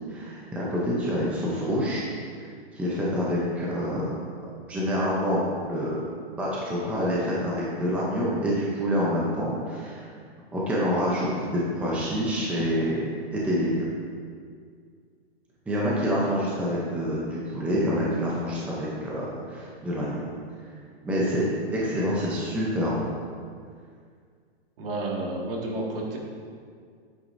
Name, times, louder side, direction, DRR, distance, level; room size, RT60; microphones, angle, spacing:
voice 1, 0.1-2.1 2.7-4.1 4.7-5.4 5.7-6.0 6.4-10.1 10.5-13.9 15.7-20.1 21.0-23.0, equal, 5° right, -6 dB, 0.6 m, -27 dB
voice 2, 24.8-26.2, right 2 dB, 60° right, -2 dB, 2.0 m, -31 dB
9.4 x 8.5 x 2.6 m, 2.1 s
hypercardioid pair, 155°, 32 cm